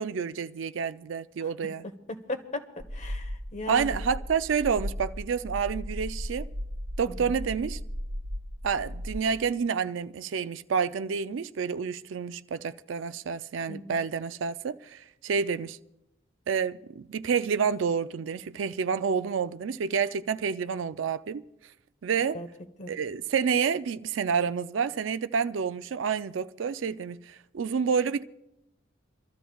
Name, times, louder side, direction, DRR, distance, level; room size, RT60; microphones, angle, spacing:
voice 1, 0.0-1.8 3.7-6.5 7.0-7.8 8.6-15.8 16.5-21.4 22.0-22.4 22.9-28.2, right 6 dB, 75° right, 0.4 m, -29 dB
voice 2, 2.3-2.6 2.9-3.9 7.0-7.1 13.7-14.0 22.3-22.5 22.8-22.9, left 2 dB, 40° left, 1.0 m, -37 dB
sound 1, 2.8-9.2, equal, 45° right, 0.9 m, -36 dB
28.0 x 13.0 x 2.3 m
head